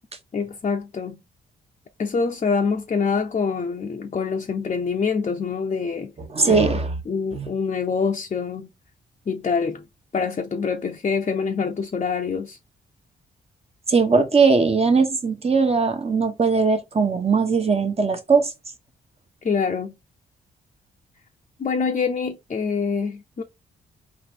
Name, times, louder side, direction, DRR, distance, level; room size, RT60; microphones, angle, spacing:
voice 1, 0.3-1.2 2.0-6.1 6.4-6.7 7.1-8.7 9.3-9.8 10.1-12.6 19.4-20.0 21.6-23.4, left 5 dB, 35° left, 0.6 m, -25 dB
voice 2, 6.3-6.9 7.3-7.5 13.9-18.5, right 4 dB, 30° right, 1.0 m, -19 dB
3.9 x 2.6 x 3.5 m
supercardioid pair, 50°, 20 cm